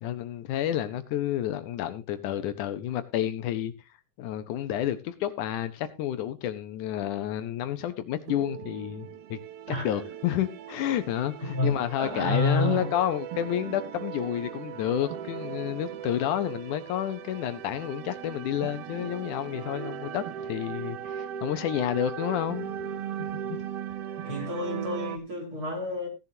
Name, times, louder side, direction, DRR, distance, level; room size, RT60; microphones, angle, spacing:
voice 1, 0.0-3.7 4.2-9.4 9.7-22.7 23.2-23.6 24.2-24.5, left 11 dB, 75° left, 2.2 m, -30 dB
sound 1, 8.3-25.2, right 9 dB, 70° right, 1.5 m, -38 dB
voice 2, 11.5-12.9 24.2-26.1, left 2 dB, 40° right, 3.8 m, -29 dB
16.5 x 11.0 x 2.7 m
omnidirectional pair, 3.7 m